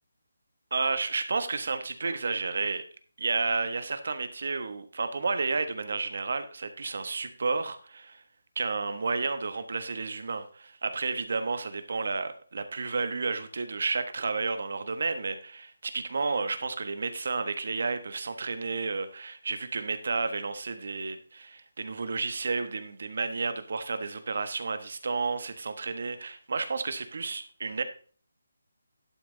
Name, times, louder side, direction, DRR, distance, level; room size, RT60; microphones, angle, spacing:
voice 1, 0.7-2.8 3.2-8.2 8.5-27.8, right 4 dB, 50° right, 10 dB, 1.3 m, -31 dB
11.5 x 6.1 x 3.9 m, 0.42 s
hypercardioid pair, 175°, 0 cm